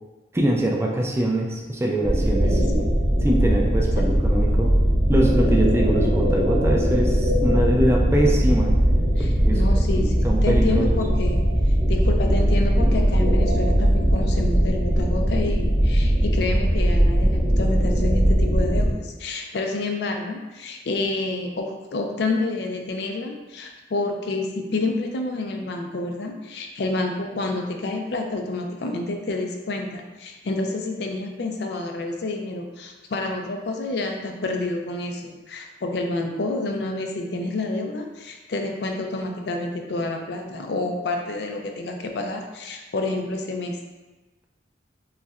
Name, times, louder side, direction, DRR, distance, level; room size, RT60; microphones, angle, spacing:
voice 1, 0.3-2.9 3.2-4.7 5.1-8.7 9.2-9.6 10.0-11.0, right 1 dB, 15° right, -1 dB, 0.3 m, -23 dB
sound 1, 2.0-18.9, equal, 40° right, 1.2 m, -20 dB
voice 2, 9.2-11.4 11.9-43.8, left 2 dB, 65° left, 3 dB, 0.4 m, -28 dB
5.4 x 2.1 x 2.3 m, 1.2 s
head